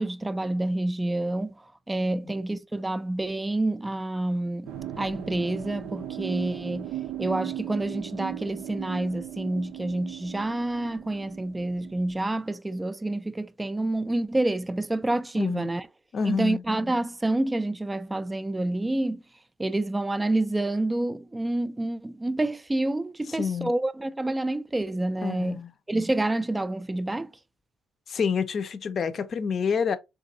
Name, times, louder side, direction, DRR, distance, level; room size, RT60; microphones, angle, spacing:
voice 1, 0.0-4.7 5.0-6.9 7.2-15.9 16.2-19.2 19.6-25.6 25.9-27.3, right 2 dB, 15° right, 0.3 m, -28 dB
sound 1, 4.7-12.2, right 12 dB, 80° right, 0.4 m, -37 dB
voice 2, 15.4-15.7 16.1-16.6 23.4-23.7 25.2-25.7 28.1-30.0, left 6 dB, 50° left, 0.5 m, -28 dB
3.8 x 2.5 x 2.6 m
supercardioid pair, 80°, 0 cm